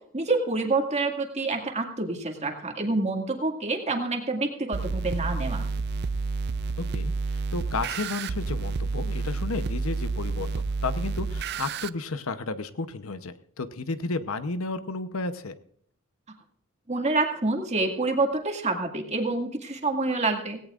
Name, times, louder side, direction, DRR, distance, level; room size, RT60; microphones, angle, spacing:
voice 1, 0.1-5.7 16.9-20.6, right 3 dB, 30° right, 3 dB, 2.1 m, -27 dB
sound 1, 4.7-11.9, right 4 dB, 50° right, 0.4 m, -30 dB
voice 2, 6.8-15.5, left 3 dB, 80° left, 11 dB, 0.9 m, -33 dB
17.5 x 17.5 x 2.5 m, 0.67 s
head